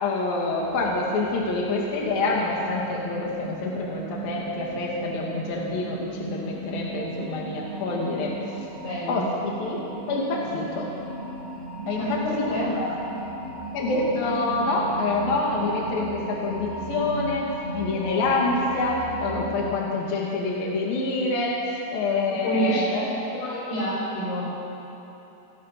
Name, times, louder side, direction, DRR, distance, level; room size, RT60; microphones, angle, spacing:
voice 1, 0.0-8.3 9.1-9.8 10.1-10.9 11.9-12.1 12.4-12.5 12.8-12.9 13.7-17.5 17.7-21.5 21.9-23.0, left 3 dB, 55° left, -2 dB, 4.0 m, -26 dB
sound 1, 0.6-19.7, right 2 dB, 25° right, 1.5 m, -36 dB
voice 2, 8.8-9.2 12.0-12.8 22.3-24.5, equal, 85° left, -6 dB, 9.9 m, -28 dB
29.0 x 20.5 x 6.1 m, 3.0 s
omnidirectional pair, 5.2 m